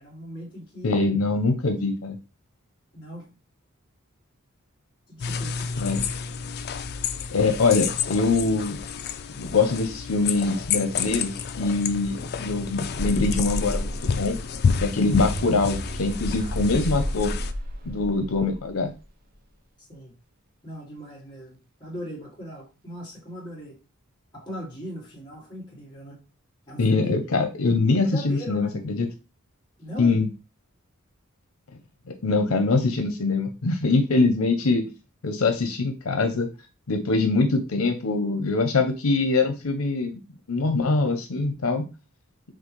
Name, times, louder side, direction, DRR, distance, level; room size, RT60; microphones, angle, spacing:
voice 1, 0.0-1.0 2.9-3.3 5.1-6.1 16.4-16.6 19.9-20.1 20.6-23.8 24.3-26.2 26.7-27.1 28.0-28.8 29.8-30.2, equal, 20° left, -4 dB, 2.0 m, -38 dB
voice 2, 0.8-2.2 5.8-6.0 7.3-8.8 9.4-11.3 11.6-14.4 14.8-17.3 17.9-18.9 26.8-29.1 30.0-30.3 32.2-34.8 35.2-36.5 36.9-40.2 40.5-41.9, left 3 dB, 90° left, 5 dB, 0.7 m, -23 dB
sound 1, 5.2-17.5, left 6 dB, 50° left, 0.4 m, -30 dB
sound 2, 12.9-19.0, equal, 45° right, 0.6 m, -32 dB
6.1 x 2.4 x 3.1 m, 0.30 s
head